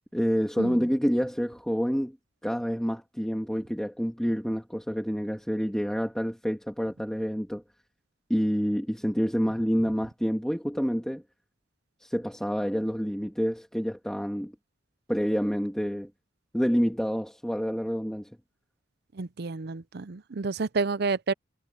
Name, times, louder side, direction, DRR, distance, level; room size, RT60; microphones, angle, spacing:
voice 1, 0.1-2.2 2.4-7.6 8.3-11.2 12.0-14.5 15.1-16.1 16.5-18.3, equal, 5° left, 2.4 m, -28 dB
voice 2, 19.2-21.3, right 4 dB, 50° right, 0.6 m, -30 dB
head